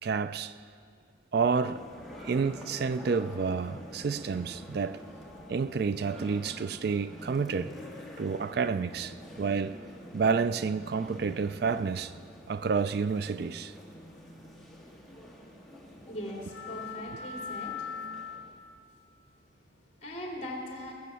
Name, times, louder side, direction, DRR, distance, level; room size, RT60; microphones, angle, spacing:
voice 1, 0.0-0.5 1.3-1.9 2.2-5.0 5.5-7.7 8.2-9.8 10.1-12.1 12.5-13.7, right 5 dB, 55° right, 0.4 m, -29 dB
sound 1, 1.6-18.8, left 2 dB, ahead, 1.6 m, -45 dB
voice 2, 15.9-17.9 19.7-20.9, equal, 35° left, 3.0 m, -40 dB
21.0 x 7.5 x 6.9 m
head